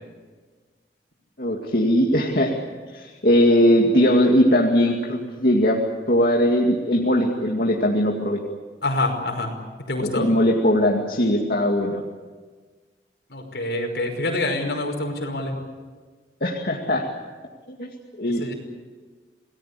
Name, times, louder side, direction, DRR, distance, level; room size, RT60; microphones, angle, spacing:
voice 1, 1.4-2.6 2.9-5.8 6.1-8.4 10.0-12.0 16.4-17.1 17.7-17.9 18.2-18.5, equal, 55° left, -1 dB, 2.3 m, -20 dB
voice 2, 8.8-9.5 9.9-10.3 13.3-15.6 18.2-18.5, left 2 dB, 75° left, 3 dB, 5.5 m, -26 dB
28.0 x 19.0 x 8.5 m, 1.4 s
head